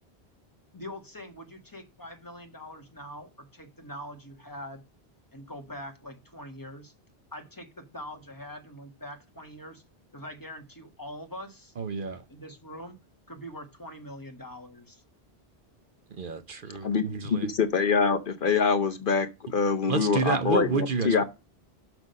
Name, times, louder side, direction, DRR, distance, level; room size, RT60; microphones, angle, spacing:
voice 1, 0.7-4.8 5.3-6.9 7.3-9.8 10.1-11.7 12.3-13.0 13.3-15.0, equal, 20° left, 1.4 m, -43 dB
voice 2, 11.8-12.2 16.1-17.5 19.9-21.2, right 5 dB, 55° right, 1.0 m, -30 dB
voice 3, 16.8-21.2, left 5 dB, 55° left, 0.9 m, -25 dB
6.1 x 6.1 x 5.2 m
omnidirectional pair, 1.1 m